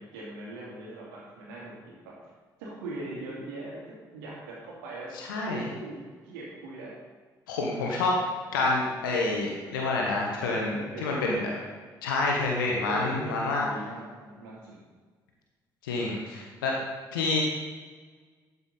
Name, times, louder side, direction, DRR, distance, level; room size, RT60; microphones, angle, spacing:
voice 1, 0.0-2.1 2.6-3.8 4.1-5.1 5.5-6.9 10.7-11.7 12.8-14.8, right 2 dB, 75° right, -4 dB, 2.6 m, -40 dB
voice 2, 5.1-5.7 7.5-8.1 8.5-11.5 12.0-13.6 15.8-16.7 17.1-17.4, left 3 dB, 80° left, -1 dB, 1.1 m, -28 dB
12.5 x 5.5 x 4.2 m, 1.5 s
figure-of-eight pair, 45°, 11 cm